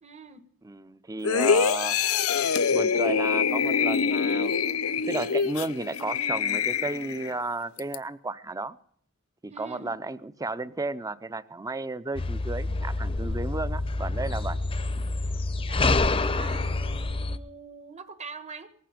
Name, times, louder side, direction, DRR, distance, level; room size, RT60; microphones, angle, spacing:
voice 1, 0.0-0.5 1.5-1.7 9.5-10.0 15.6-15.9 16.2-18.7, right 4 dB, 30° right, 10 dB, 1.3 m, -43 dB
voice 2, 0.6-1.9 2.7-4.5 5.1-8.7 9.4-14.6 15.0-15.1, right 2 dB, 15° right, 16 dB, 0.6 m, -33 dB
sound 1, 1.2-7.3 7.8-8.0, left 6 dB, 80° left, 0.7 m, -25 dB
sound 2, 12.1-17.4, left 3 dB, 25° left, 0.7 m, -27 dB
18.5 x 15.0 x 5.1 m, 0.64 s
head